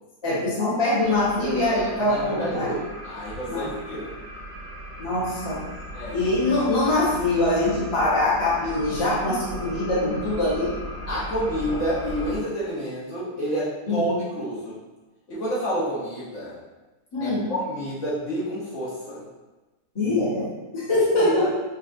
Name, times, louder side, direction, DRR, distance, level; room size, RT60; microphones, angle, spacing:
voice 1, 0.2-2.7 3.5-3.7 5.0-5.6 6.1-10.7 11.7-11.8 13.9-14.0 17.1-17.5 19.9-21.5, left 2 dB, 20° left, -8 dB, 0.8 m, -23 dB
sound 1, 1.0-12.4, equal, 75° right, 1.3 m, -38 dB
voice 2, 1.6-4.1 5.9-6.2 11.1-14.8 15.3-16.6 17.2-19.2 21.1-21.5, equal, 50° left, -9 dB, 1.2 m, -29 dB
5.2 x 2.3 x 2.6 m, 1.1 s
omnidirectional pair, 1.9 m